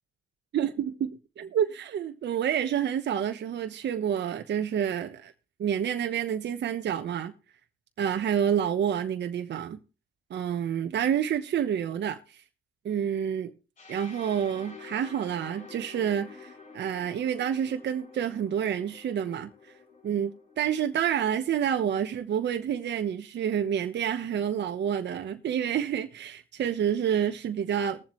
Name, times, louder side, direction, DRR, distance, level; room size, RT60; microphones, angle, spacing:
voice 1, 0.5-5.3 5.6-7.3 8.0-9.8 10.3-12.4 12.8-13.5 13.9-16.5 16.7-19.5 20.0-28.0, right 9 dB, 60° right, 1.1 m, -28 dB
sound 1, 13.8-21.6, left 4 dB, 40° left, 4.0 m, -49 dB
21.0 x 7.4 x 3.2 m
cardioid pair, 90°, 20 cm